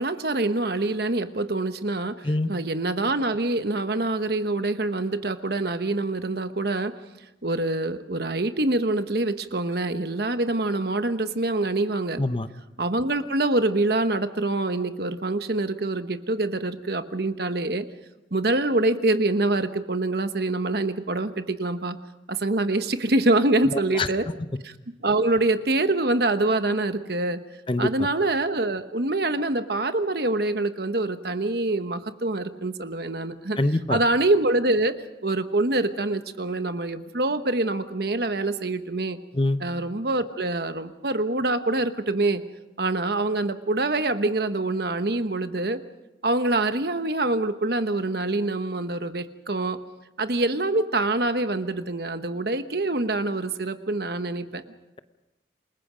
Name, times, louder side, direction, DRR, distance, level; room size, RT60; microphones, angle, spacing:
voice 1, 0.0-6.9 7.4-12.2 12.8-17.9 18.3-22.0 22.3-24.3 24.6-24.7 25.0-27.4 27.8-33.6 33.9-35.0 35.2-39.2 39.6-42.4 42.8-45.8 46.2-49.8 50.2-54.6, right 2 dB, 55° right, 9 dB, 1.1 m, -25 dB
voice 2, 12.2-12.5 23.7-24.1 27.7-27.9 33.6-34.0 39.3-39.6, left 2 dB, 25° left, 11 dB, 0.8 m, -24 dB
28.5 x 21.0 x 5.1 m, 0.96 s
head